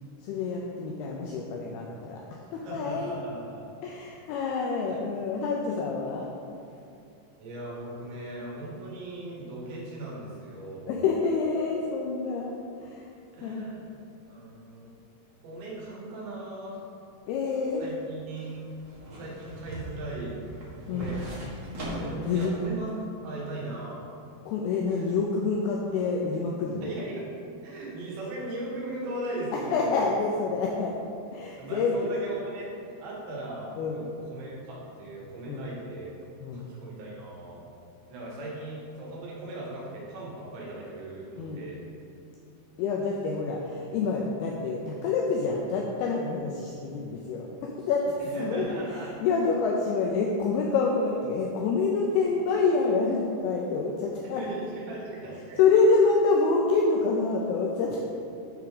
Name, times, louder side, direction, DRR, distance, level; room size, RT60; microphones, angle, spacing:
voice 1, 0.2-3.1 3.8-6.3 10.9-12.5 12.8-13.1 13.4-13.7 17.3-17.9 20.9-21.1 22.2-22.5 24.5-26.9 29.5-31.0 31.3-32.1 33.8-34.0 35.5-35.7 36.4-36.7 41.4-41.6 42.8-54.4 55.6-58.0, left 4 dB, 80° left, -1 dB, 2.5 m, -27 dB
voice 2, 2.5-3.6 4.9-5.0 7.4-11.0 13.3-13.9 14.3-14.9 15.4-16.8 17.8-18.6 19.1-20.4 20.8-21.2 22.0-24.0 24.9-25.0 26.8-27.3 27.6-30.0 31.6-36.1 36.5-37.7 38.1-41.8 48.2-49.1 54.3-55.6, right 2 dB, 90° right, -6 dB, 4.0 m, -38 dB
sound 1, 17.5-22.6 23.0-23.1, equal, 70° right, 0.8 m, -39 dB
10.5 x 3.6 x 6.7 m, 2.6 s
omnidirectional pair, 4.9 m